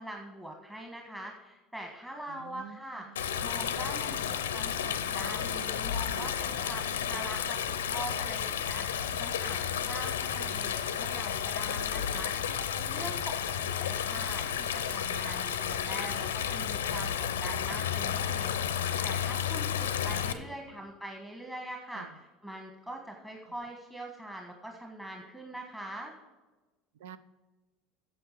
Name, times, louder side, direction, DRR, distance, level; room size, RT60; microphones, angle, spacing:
voice 1, 0.0-7.6 7.8-9.6 9.9-26.1, right 1 dB, 10° right, 1 dB, 1.5 m, -43 dB
voice 2, 2.3-3.2 4.2-4.4 13.2-13.7 21.9-22.1 27.0-27.2, right 8 dB, 75° right, 14 dB, 0.5 m, -49 dB
Stream, 3.2-20.3, left 8 dB, 85° left, 0.6 m, -32 dB
8.7 x 7.1 x 6.6 m, 1.2 s
hypercardioid pair, 75°, 0 cm